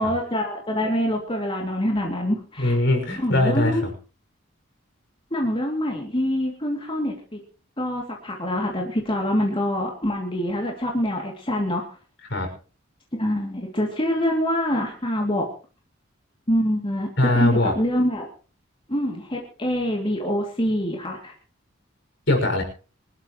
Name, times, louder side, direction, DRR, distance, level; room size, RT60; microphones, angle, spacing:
voice 1, 0.0-2.8 3.2-3.8 5.3-7.4 7.8-11.8 13.2-15.5 16.5-17.1 17.3-18.3 18.9-21.3, equal, 25° left, 0 dB, 2.8 m, -25 dB
voice 2, 2.6-3.8 12.3-12.5 17.2-17.7 22.3-22.6, left 1 dB, 60° left, 2 dB, 6.3 m, -21 dB
25.5 x 12.5 x 3.2 m, 0.37 s
head